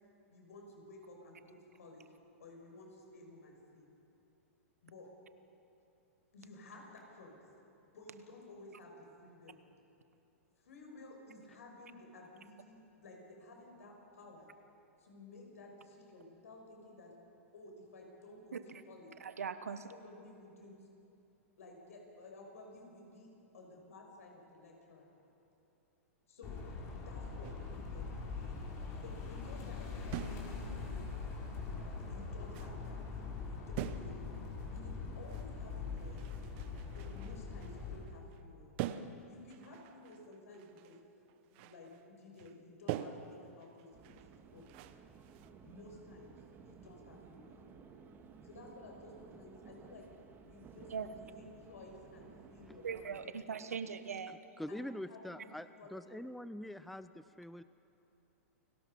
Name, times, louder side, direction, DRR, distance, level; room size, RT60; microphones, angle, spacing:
voice 1, 0.3-2.1 2.4-3.9 4.8-5.1 6.3-7.4 7.9-8.9 9.2-9.6 10.6-14.5 15.0-17.1 17.5-18.6 18.9-19.1 19.7-20.8 21.6-23.3 23.5-25.0 26.3-26.6 26.9-28.4 29.0-31.4 32.0-33.0 33.4-34.2 34.7-36.2 36.9-38.7 39.3-40.9 41.5-44.6 45.6-47.7 48.4-50.0 50.4-53.4 54.7-55.5 55.8-56.2, left 2 dB, 80° left, 0 dB, 6.2 m, -54 dB
voice 2, 18.5-18.8 19.2-19.8 50.9-51.1 52.8-54.4, right 6 dB, 85° right, 11 dB, 1.1 m, -40 dB
sound 1, 26.4-38.0, left 4 dB, 35° left, 4.8 m, -42 dB
sound 2, 27.4-27.8 30.1-30.6 30.9-31.0 31.9-32.0 32.5-32.9 33.8-34.3 34.6-34.7 35.3-38.4 38.8-41.0 41.3-42.1 42.4-42.6 42.9-45.5, right 11 dB, 50° right, 1.0 m, -45 dB
sound 3, 43.9-53.3, right 5 dB, 25° right, 1.8 m, -57 dB
voice 3, 54.6-57.6, left 1 dB, ahead, 13 dB, 0.5 m, -44 dB
29.0 x 19.0 x 5.6 m, 2.8 s
hypercardioid pair, 115°, 8 cm